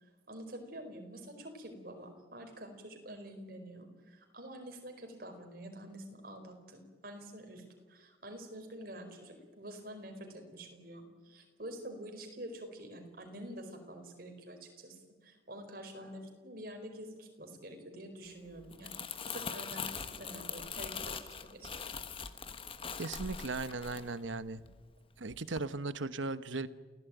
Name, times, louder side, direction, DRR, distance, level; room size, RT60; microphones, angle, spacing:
voice 1, 0.3-21.9, right 1 dB, 50° right, 4 dB, 4.7 m, -47 dB
Crumpling crinkling, 18.6-24.9 25.3-25.6, left 6 dB, 30° left, 1.1 m, -42 dB
voice 2, 23.0-24.6 25.2-26.7, right 3 dB, 80° right, 13 dB, 1.1 m, -37 dB
29.0 x 17.0 x 9.3 m, 1.5 s
head